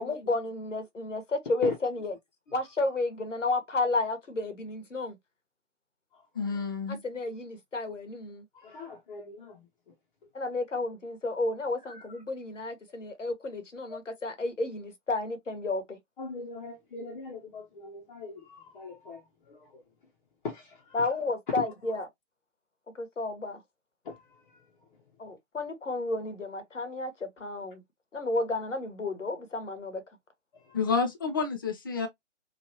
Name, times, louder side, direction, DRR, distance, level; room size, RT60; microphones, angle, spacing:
voice 1, 0.0-2.1 2.5-5.2 6.9-8.4 10.3-16.0 20.9-22.1 22.9-23.6 25.2-27.8 28.1-30.0, left 2 dB, 90° left, 1.2 m, -32 dB
voice 2, 6.4-7.0 30.7-32.1, left 4 dB, 20° left, 0.4 m, -29 dB
voice 3, 8.5-9.9 11.9-12.2 13.9-14.0 16.2-19.8 20.4-21.0 21.5-21.7 24.0-24.7 30.5-30.9, left 4 dB, 45° left, 0.8 m, -41 dB
3.1 x 2.4 x 2.7 m
figure-of-eight pair, 135°, 36 cm